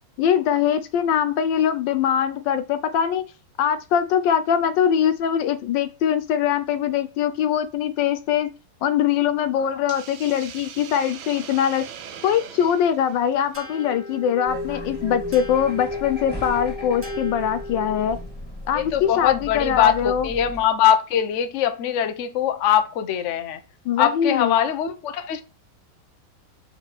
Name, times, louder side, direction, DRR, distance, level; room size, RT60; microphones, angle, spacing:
voice 1, 0.2-3.2 3.6-8.5 8.8-11.9 12.2-18.2 18.7-20.3 23.8-24.6, left 9 dB, 75° left, 1.2 m, -22 dB
Hiss, 9.9-14.2, right 8 dB, 85° right, 1.6 m, -41 dB
sound 1, 13.5-18.3, left 1 dB, 10° right, 0.9 m, -34 dB
sound 2, 14.5-20.7, left 1 dB, 15° left, 1.7 m, -37 dB
voice 2, 18.7-23.6 24.0-25.4, left 9 dB, 55° left, 0.9 m, -22 dB
6.7 x 4.2 x 4.4 m
omnidirectional pair, 2.1 m